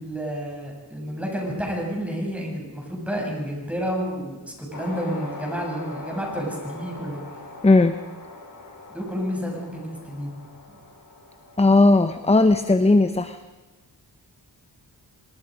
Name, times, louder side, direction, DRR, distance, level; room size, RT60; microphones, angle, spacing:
voice 1, 0.0-7.2 8.9-10.4 10.7-10.8, equal, 5° right, -1 dB, 8.0 m, -30 dB
sound 1, 4.7-13.2, left 2 dB, 50° left, 6.2 m, -41 dB
voice 2, 7.6-8.0 11.6-13.4, left 2 dB, 15° left, 10 dB, 0.8 m, -17 dB
26.0 x 20.0 x 5.3 m, 1.2 s
cardioid pair, 80°, 42 cm